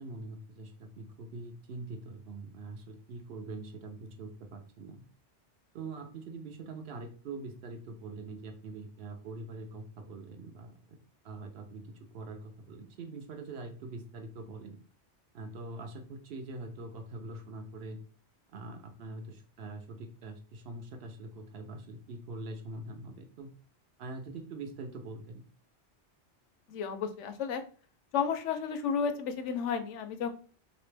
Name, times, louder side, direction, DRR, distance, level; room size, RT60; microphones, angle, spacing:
voice 1, 0.0-5.0 5.7-11.0 11.2-14.8 15.3-18.0 18.5-23.5 24.0-25.4, right 2 dB, 60° right, 5 dB, 0.9 m, -43 dB
voice 2, 26.7-27.6 28.1-30.3, left 6 dB, 90° left, 8 dB, 0.9 m, -32 dB
3.2 x 2.9 x 3.2 m, 0.40 s
omnidirectional pair, 1.2 m